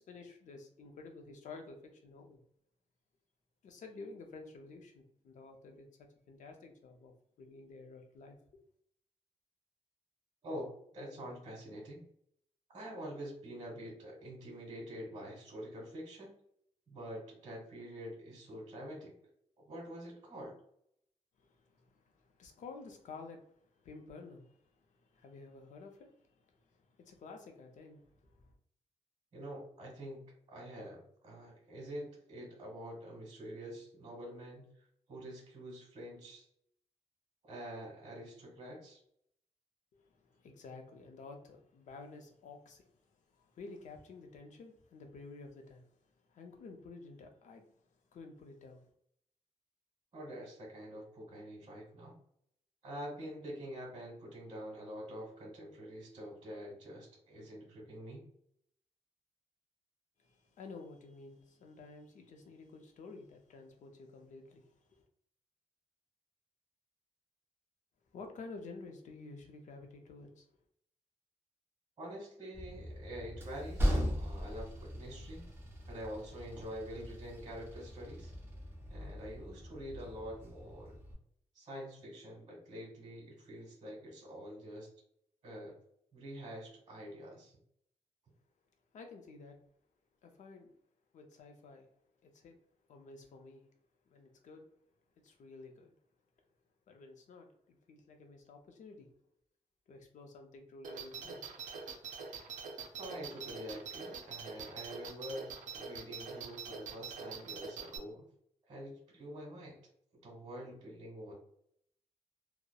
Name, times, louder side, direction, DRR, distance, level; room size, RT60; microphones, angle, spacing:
voice 1, 0.0-2.4 3.6-5.9 6.3-8.4 21.4-23.4 23.7-24.6 24.9-28.5 40.0-42.9 43.3-45.8 46.3-47.6 48.1-48.8 60.2-65.0 68.1-70.5 88.9-89.6 90.2-90.7 91.1-91.9 92.2-92.6 92.9-93.6 94.1-94.7 95.2-95.9 96.9-99.1 99.9-101.4, left 3 dB, 75° left, 0.5 m, -51 dB
voice 2, 10.4-12.0 12.7-16.3 16.9-19.1 19.7-20.5 29.3-30.2 30.5-34.7 35.1-36.4 37.4-39.0 50.1-52.1 52.8-58.2 72.0-75.4 75.9-78.3 78.9-80.9 81.5-84.9 85.4-85.7 86.1-87.5 103.0-108.2 108.7-109.8 110.2-111.3, equal, 45° right, 1.2 m, -46 dB
Train, 72.5-81.1, equal, 20° right, 0.5 m, -39 dB
sound 1, 100.8-108.0, right 5 dB, 90° right, 0.4 m, -44 dB
2.7 x 2.0 x 2.3 m
wide cardioid pair, 170°, 13 cm